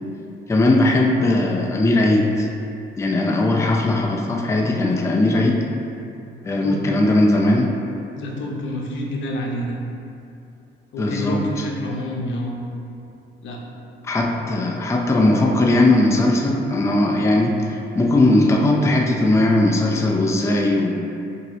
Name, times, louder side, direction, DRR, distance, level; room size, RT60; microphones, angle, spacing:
voice 1, 0.5-2.5 3.0-5.6 6.4-7.7 11.0-11.4 14.0-21.0, left 2 dB, 15° left, 0 dB, 0.4 m, -18 dB
voice 2, 8.1-9.8 10.9-12.6 13.4-13.6, left 1 dB, 75° left, -1 dB, 0.7 m, -28 dB
4.6 x 2.8 x 3.9 m, 2.6 s
cardioid pair, 90°, 20 cm